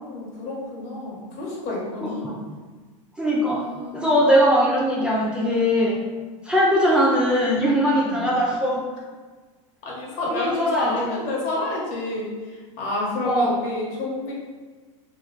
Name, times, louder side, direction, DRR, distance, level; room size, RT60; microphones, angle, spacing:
voice 1, 0.0-2.3 3.5-4.3 8.0-8.3 9.8-14.3, left 2 dB, 50° left, -3 dB, 1.3 m, -30 dB
voice 2, 2.0-2.3 3.2-3.6 3.9-6.0 6.4-8.8 10.3-11.2 13.2-13.5, equal, 5° right, -5 dB, 0.5 m, -20 dB
3.1 x 2.9 x 4.0 m, 1.4 s
supercardioid pair, 125°, 16 cm